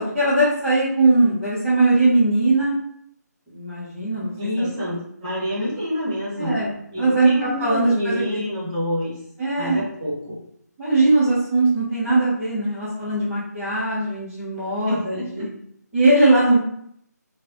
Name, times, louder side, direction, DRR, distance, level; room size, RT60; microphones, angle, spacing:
voice 1, 0.0-2.8 3.5-4.7 6.4-8.5 9.4-9.8 10.8-15.5 15.9-16.6, right 2 dB, 5° right, -18 dB, 1.0 m, -20 dB
voice 2, 4.4-6.6 6.9-9.1 9.6-10.4 14.9-15.5, left 1 dB, 20° right, -8 dB, 1.4 m, -27 dB
4.8 x 2.4 x 3.0 m, 0.70 s
figure-of-eight pair, 160°, 9 cm